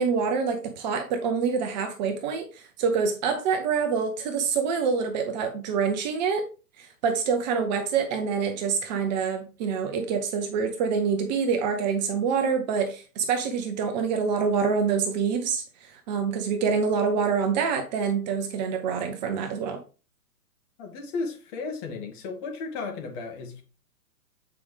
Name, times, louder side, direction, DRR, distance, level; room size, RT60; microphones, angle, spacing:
voice 1, 0.0-6.5 6.8-19.8, right 6 dB, 30° right, 0.9 m, -26 dB
voice 2, 20.8-23.6, left 4 dB, 30° left, 2.2 m, -34 dB
8.6 x 5.0 x 3.3 m
hypercardioid pair, 130°, 46 cm